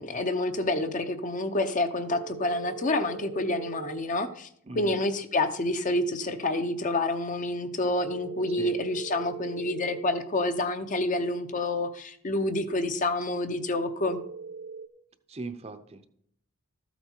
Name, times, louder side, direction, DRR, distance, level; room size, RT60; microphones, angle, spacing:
voice 1, 0.0-4.5 4.7-14.2, left 2 dB, 35° left, 8 dB, 0.7 m, -28 dB
sound 1, 2.1-4.0 8.0-10.0 14.0-14.9, right 5 dB, 80° right, 1.4 m, -41 dB
voice 2, 15.3-16.1, right 3 dB, 30° right, 9 dB, 0.7 m, -39 dB
13.5 x 8.2 x 4.5 m, 0.68 s
head